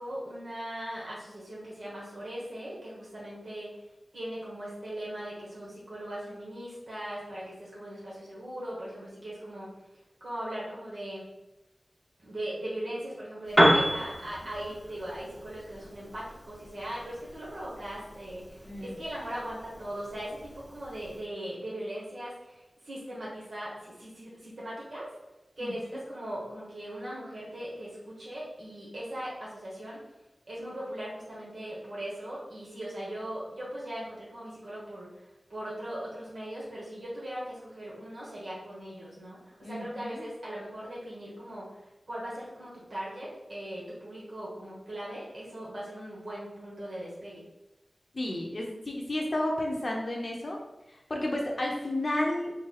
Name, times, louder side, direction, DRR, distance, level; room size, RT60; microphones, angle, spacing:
voice 1, 0.0-3.7 4.1-9.7 10.2-11.2 12.2-25.1 25.6-30.0 30.5-47.4, right 1 dB, 65° right, -7 dB, 1.4 m, -39 dB
Piano, 13.4-21.3, equal, 15° right, 1.2 m, -31 dB
voice 2, 18.7-19.0 25.6-25.7 39.6-40.3 48.1-50.6 51.1-52.5, left 1 dB, 55° left, 0 dB, 0.9 m, -32 dB
4.1 x 2.3 x 4.1 m, 0.98 s
wide cardioid pair, 55°, 0 cm